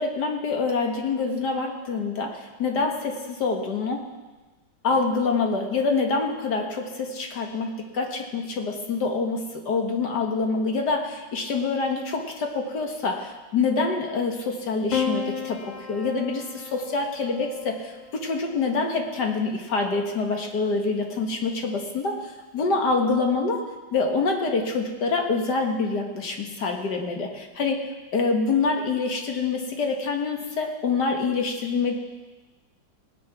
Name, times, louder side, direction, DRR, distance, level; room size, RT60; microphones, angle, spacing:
voice 1, 0.0-4.1 4.8-23.7 23.9-27.8 28.1-31.9, left 4 dB, 65° left, 3 dB, 2.1 m, -26 dB
Piano, 14.9-19.4 20.6-21.3, left 6 dB, 85° left, 2.0 m, -34 dB
19.0 x 8.1 x 6.0 m, 1.2 s
omnidirectional pair, 2.0 m